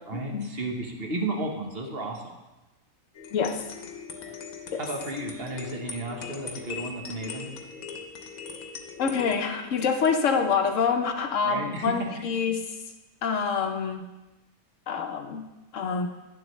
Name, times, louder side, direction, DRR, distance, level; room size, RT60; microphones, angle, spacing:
voice 1, 0.1-2.4 4.8-7.5 11.4-11.9, right 2 dB, 45° right, 1 dB, 1.2 m, -33 dB
sound 1, 3.1-11.4, left 6 dB, 85° left, 1.3 m, -41 dB
voice 2, 3.3-3.6 4.7-4.8 9.0-12.6 13.2-14.0 14.9-15.4 15.7-16.1, left 5 dB, 70° left, 6 dB, 1.0 m, -26 dB
9.8 x 7.3 x 3.1 m, 1.1 s
omnidirectional pair, 1.4 m